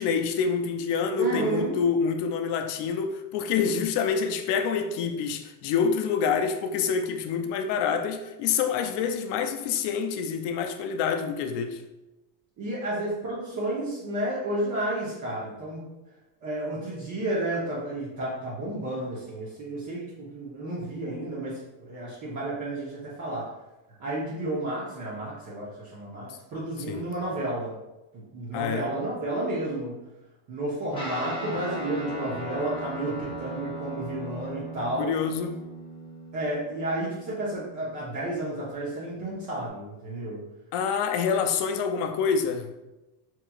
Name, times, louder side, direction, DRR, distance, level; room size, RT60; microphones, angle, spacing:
voice 1, 0.0-11.8 26.9-27.0 28.5-28.9 35.0-35.7 40.7-42.7, left 6 dB, 60° left, 0.5 m, -27 dB
voice 2, 1.2-1.7 12.6-15.9 16.4-23.5 24.0-27.8 28.3-30.0 30.5-35.1 36.3-40.4, right 1 dB, 35° right, 0.8 m, -31 dB
Guitar, 30.9-39.7, equal, 10° left, 0.7 m, -38 dB
4.6 x 3.0 x 2.3 m
cardioid pair, 170°, 49 cm